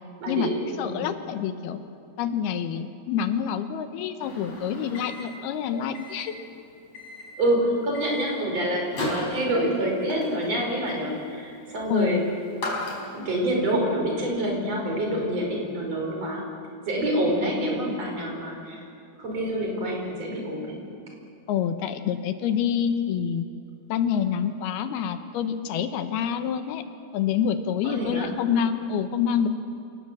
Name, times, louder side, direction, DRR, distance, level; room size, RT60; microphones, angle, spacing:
voice 1, 0.2-1.1 7.4-12.2 13.1-16.4 16.8-18.8 19.2-20.8 27.8-28.3, right 1 dB, 40° right, 0 dB, 6.0 m, -27 dB
voice 2, 0.8-1.8 2.2-6.4 11.9-12.2 21.5-23.5 23.9-26.8 27.1-29.5, left 8 dB, 80° left, 9 dB, 2.9 m, -27 dB
Microwave oven, 4.2-13.4, left 2 dB, 40° left, 5.8 m, -37 dB
28.0 x 18.5 x 7.5 m, 2.6 s
omnidirectional pair, 4.6 m